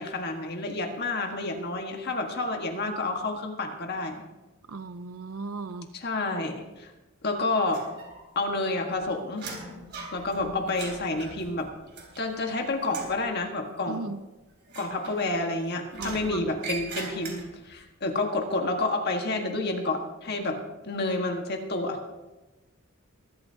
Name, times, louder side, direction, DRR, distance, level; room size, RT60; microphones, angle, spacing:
voice 1, 0.0-4.2 5.9-6.9 7.2-7.8 8.3-9.5 10.1-11.7 12.2-14.1 14.7-20.6 20.8-22.0, left 2 dB, 50° left, 2 dB, 1.6 m, -29 dB
voice 2, 4.7-5.9 13.9-14.2 16.0-16.4, right 3 dB, 80° right, 11 dB, 0.7 m, -36 dB
sound 1, 7.7-8.5 8.8-12.5 12.8-13.2 14.6-15.5 15.9-17.7, right 3 dB, 55° right, 3.5 m, -41 dB
22.0 x 12.5 x 2.8 m, 1.1 s
head